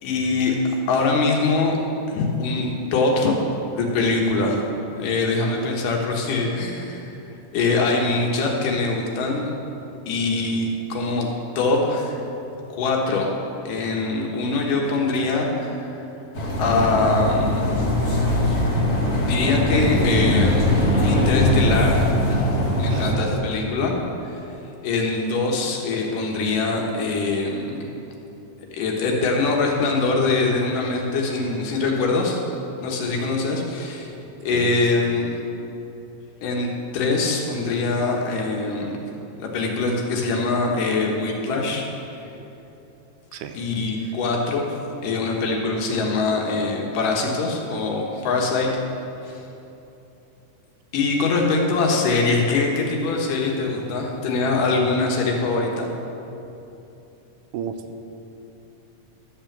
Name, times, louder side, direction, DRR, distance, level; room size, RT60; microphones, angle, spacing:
voice 1, 0.0-0.6 0.9-1.8 2.1-4.7 5.0-7.2 7.5-9.5 10.1-11.3 11.6-12.2 12.7-13.3 13.7-15.9 16.6-17.7 19.3-20.7 21.0-22.0 22.8-24.0 24.2-24.4 24.8-27.8 28.7-32.4 32.8-34.1 34.4-35.3 36.4-36.7 36.9-39.0 39.4-41.9 43.5-44.8 45.0-48.7 49.2-49.4 50.9-55.9, left 3 dB, 75° left, 0 dB, 2.8 m, -23 dB
sound 1, 16.3-23.1, left 1 dB, 40° left, 1.8 m, -21 dB
voice 2, 22.9-23.3 34.5-34.7 43.3-43.6 57.5-57.7, right 9 dB, 80° right, 7 dB, 2.1 m, -32 dB
12.5 x 5.8 x 7.3 m, 2.9 s
omnidirectional pair, 3.8 m